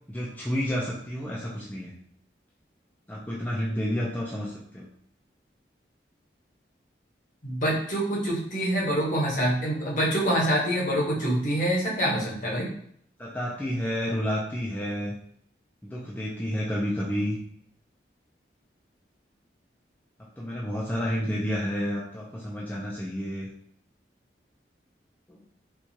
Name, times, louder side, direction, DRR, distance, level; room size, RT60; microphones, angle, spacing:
voice 1, 0.1-1.9 3.1-4.9 13.2-15.1 15.8-17.4 20.4-23.5 25.3-25.4, equal, 10° left, -6 dB, 0.4 m, -30 dB
voice 2, 7.4-12.7, equal, 45° left, -4 dB, 1.0 m, -26 dB
4.4 x 2.4 x 2.8 m, 0.65 s
head